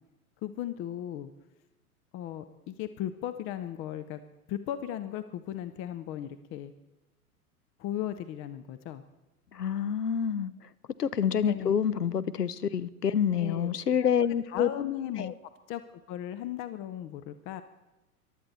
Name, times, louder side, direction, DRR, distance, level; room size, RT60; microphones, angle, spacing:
voice 1, 0.4-1.3 2.1-4.2 4.5-6.7 7.8-9.0 11.5-11.7 13.4-13.7 14.0-14.1 14.4-15.3 15.7-17.6, left 11 dB, 30° left, 11 dB, 0.7 m, -36 dB
voice 2, 9.5-10.5 11.0-14.7, left 8 dB, 85° left, 15 dB, 0.8 m, -27 dB
22.5 x 12.0 x 4.2 m, 1.0 s
figure-of-eight pair, 95°, 46 cm